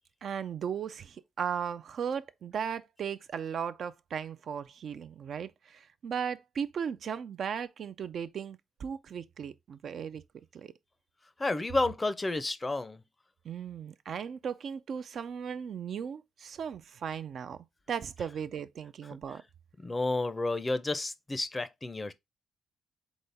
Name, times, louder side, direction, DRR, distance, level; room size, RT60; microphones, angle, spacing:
voice 1, 0.2-10.2 10.5-10.7 13.4-17.6 17.9-19.4, right 7 dB, 60° right, 0.4 m, -36 dB
voice 2, 11.4-13.0 19.1-19.2 19.8-22.1, left 2 dB, 20° left, 0.5 m, -31 dB
4.1 x 3.8 x 3.4 m
cardioid pair, 90°, 0 cm